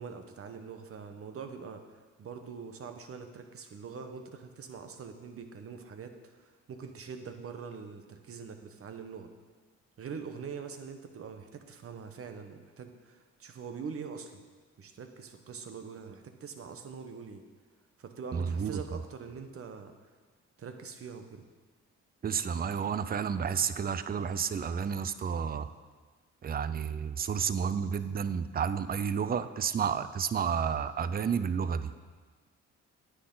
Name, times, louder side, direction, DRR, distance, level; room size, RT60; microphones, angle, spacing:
voice 1, 0.0-9.3 10.0-14.4 14.8-17.4 18.0-19.9 20.6-21.5, right 6 dB, 50° right, 7 dB, 1.0 m, -43 dB
voice 2, 18.3-18.8 22.2-25.7 26.4-31.9, right 7 dB, 30° right, 13 dB, 0.5 m, -31 dB
9.7 x 8.6 x 4.0 m, 1.4 s
cardioid pair, 90°, 30 cm